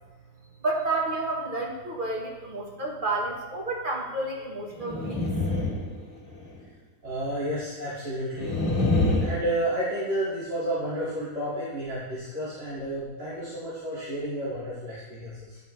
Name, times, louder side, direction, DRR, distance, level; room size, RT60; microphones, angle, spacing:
voice 1, 0.6-5.3, right 2 dB, 30° right, -2 dB, 1.3 m, -30 dB
sound 1, 4.8-6.6 8.4-9.4, left 2 dB, 30° left, 1.7 m, -26 dB
voice 2, 7.0-8.5 9.2-15.6, right 1 dB, 65° right, -12 dB, 2.9 m, -31 dB
11.5 x 5.6 x 3.2 m, 1.1 s
omnidirectional pair, 2.0 m